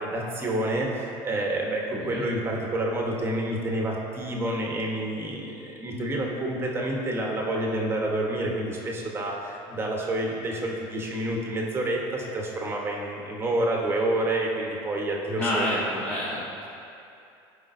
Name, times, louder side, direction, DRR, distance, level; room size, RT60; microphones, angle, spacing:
voice 1, 0.0-15.7, right 1 dB, 20° right, -1 dB, 1.2 m, -28 dB
voice 2, 1.9-2.3 15.4-16.6, left 1 dB, 10° left, -8 dB, 1.0 m, -28 dB
14.5 x 5.2 x 2.7 m, 2.6 s
cardioid pair, 135°, 11 cm